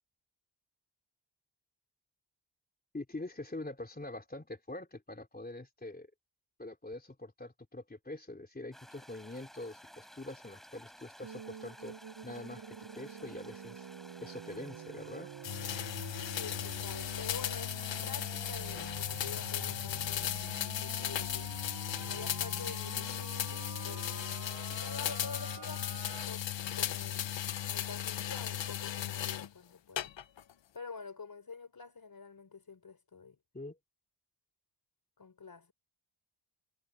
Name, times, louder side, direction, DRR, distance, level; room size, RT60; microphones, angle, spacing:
voice 1, 2.9-6.1 6.6-11.9 12.2-13.9 14.2-15.3 33.5-33.8, left 2 dB, 20° left, 3.4 m, -44 dB
sound 1, 8.7-19.8, equal, ahead, 4.9 m, -55 dB
sound 2, 11.2-26.2, right 9 dB, 50° right, 0.8 m, -48 dB
sound 3, 15.4-29.5 30.0-30.5, left 11 dB, 60° left, 0.9 m, -36 dB
voice 2, 16.4-21.5 21.9-24.1 24.7-26.4 26.7-27.2 27.7-30.1 30.7-33.4 35.2-35.7, left 5 dB, 45° left, 4.3 m, -48 dB
wide cardioid pair, 95°, 49 cm